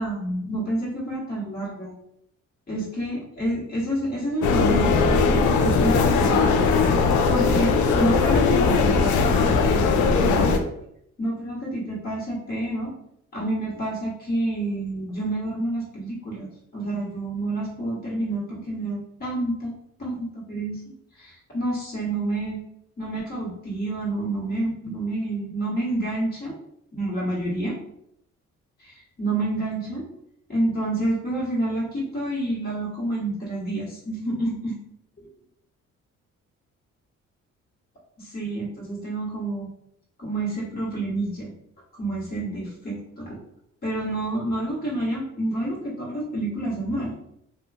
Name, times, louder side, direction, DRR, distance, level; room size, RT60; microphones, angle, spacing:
voice 1, 0.0-2.0 2.7-6.6 7.3-10.6 11.2-12.9 13.3-16.5 16.7-19.7 20.0-20.8 21.2-22.6 23.0-26.6 26.9-27.8 28.8-30.0 30.5-34.7 35.2-35.3 38.2-39.7 40.2-41.5 42.0-43.4 43.8-47.1, right 1 dB, 30° left, -6 dB, 1.2 m, -28 dB
sound 1, 4.4-10.6, left 4 dB, 70° left, 0.5 m, -19 dB
2.8 x 2.3 x 2.5 m, 0.74 s
cardioid pair, 90°, 30 cm